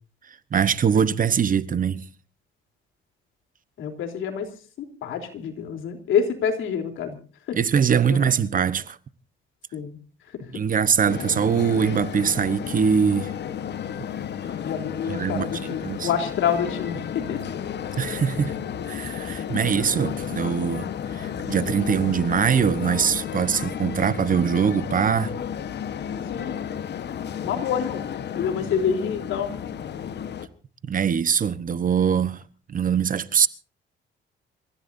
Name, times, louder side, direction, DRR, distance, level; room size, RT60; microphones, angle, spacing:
voice 1, 0.5-2.0 7.6-9.0 10.5-13.3 15.1-15.5 15.8-16.1 17.9-18.5 18.8-25.3 30.8-32.4 32.7-33.5, right 7 dB, 45° right, 1.0 m, -22 dB
voice 2, 3.8-4.5 4.8-7.2 7.5-7.6 8.1-8.3 9.7-10.0 10.3-10.5 14.6-17.4 19.5-19.6 26.3-26.6 27.4-28.0 28.3-29.5, left 7 dB, 80° left, 3.5 m, -27 dB
sound 1, 11.1-30.5, left 8 dB, 60° left, 1.3 m, -32 dB
27.0 x 15.0 x 2.7 m
cardioid pair, 90°, 20 cm